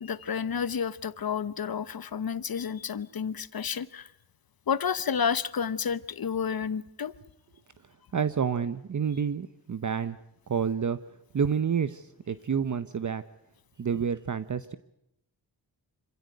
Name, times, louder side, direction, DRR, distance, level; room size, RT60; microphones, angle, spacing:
voice 1, 0.0-4.1 4.7-7.1, left 7 dB, 55° left, 16 dB, 1.0 m, -30 dB
voice 2, 8.1-10.2 10.5-11.0 11.3-13.2 13.8-14.8, right 7 dB, 45° right, 13 dB, 0.8 m, -29 dB
26.5 x 16.5 x 9.3 m, 0.81 s
wide cardioid pair, 100°, 42 cm